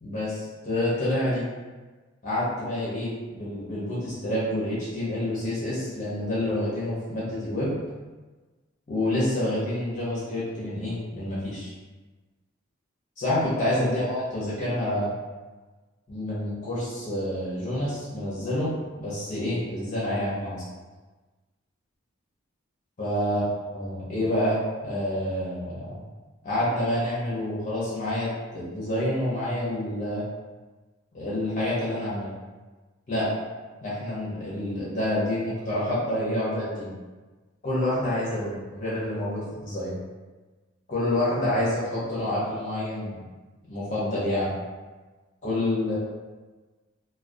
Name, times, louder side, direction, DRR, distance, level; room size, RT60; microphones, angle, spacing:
voice 1, 0.0-1.4 2.2-7.7 8.9-11.7 13.2-15.1 16.1-18.7 18.9-20.6 23.0-23.4 23.7-24.6 24.8-26.0 26.4-30.2 31.1-32.3 33.1-33.3 33.8-36.9 37.6-40.0 40.9-43.2 43.7-44.5 45.4-46.0, left 1 dB, 35° left, -8 dB, 0.5 m, -28 dB
2.3 x 2.2 x 2.5 m, 1.3 s
head